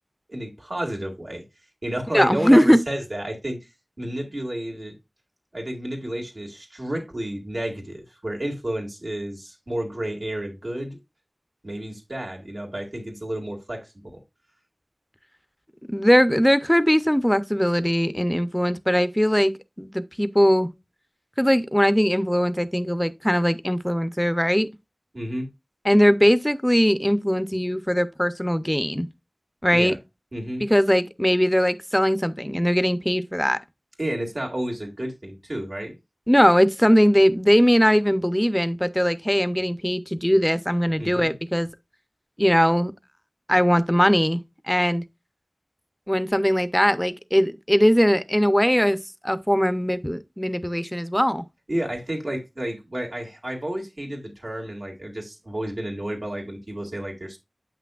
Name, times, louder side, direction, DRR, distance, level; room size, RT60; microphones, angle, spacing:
voice 1, 0.3-1.4 1.8-3.7 4.0-4.9 5.5-11.0 11.6-14.2 25.1-25.5 29.7-30.0 30.3-30.6 34.0-35.9 41.0-41.3 51.7-57.4, right 1 dB, 70° right, 2.0 m, -31 dB
voice 2, 2.1-2.8 15.9-20.7 21.4-24.7 25.8-29.1 29.6-29.9 30.7-33.6 36.3-41.7 42.4-42.9 43.5-44.4 44.7-45.0 46.1-51.4, equal, 10° left, 0.6 m, -20 dB
7.8 x 5.9 x 2.3 m
wide cardioid pair, 40°, 0 cm